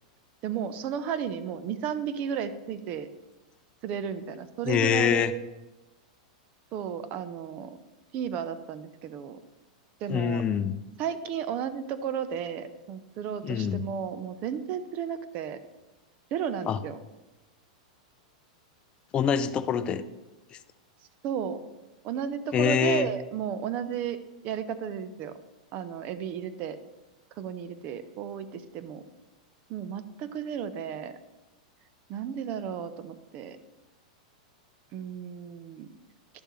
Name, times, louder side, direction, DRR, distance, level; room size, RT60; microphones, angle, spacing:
voice 1, 0.4-3.1 3.8-5.4 6.7-7.8 8.1-9.4 10.0-10.4 11.0-15.6 16.3-17.0 21.2-21.6 22.0-25.3 25.7-26.8 27.3-29.0 29.7-31.1 32.1-33.6 34.9-35.9, right 8 dB, 40° right, 12 dB, 0.7 m, -33 dB
voice 2, 4.7-5.3 10.1-10.7 13.4-13.8 16.7-16.8 19.1-20.0 22.5-23.1, left 8 dB, 25° left, 11 dB, 0.5 m, -25 dB
10.5 x 6.6 x 3.2 m, 1.1 s
hypercardioid pair, 130°, 4 cm